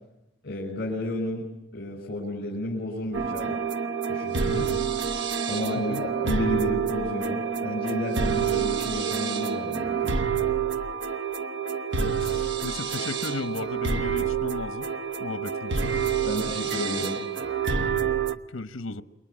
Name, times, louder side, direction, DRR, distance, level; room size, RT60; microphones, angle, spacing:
voice 1, 0.4-1.5 1.7-3.6 4.1-4.6 5.5-10.1 16.2-17.2, left 1 dB, 50° left, -2 dB, 6.0 m, -31 dB
sound 1, 3.1-18.4, right 6 dB, 60° right, 1.1 m, -28 dB
voice 2, 5.7-6.1 11.9-14.9 15.2-16.0 18.5-19.0, left 2 dB, 70° left, 13 dB, 1.1 m, -35 dB
29.0 x 23.0 x 8.6 m, 0.91 s
head